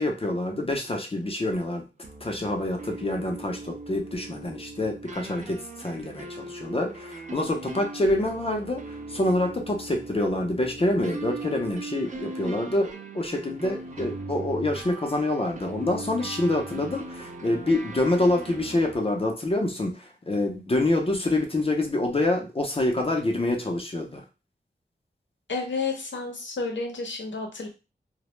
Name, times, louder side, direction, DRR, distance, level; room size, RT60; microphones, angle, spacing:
voice 1, 0.0-1.8 2.2-24.2, left 1 dB, 30° left, 2 dB, 0.5 m, -26 dB
sound 1, 2.0-19.0, right 2 dB, 40° right, 0.4 m, -39 dB
voice 2, 25.5-27.7, left 4 dB, 90° left, 2 dB, 0.6 m, -31 dB
2.1 x 2.0 x 3.0 m, 0.30 s
wide cardioid pair, 75°, 19 cm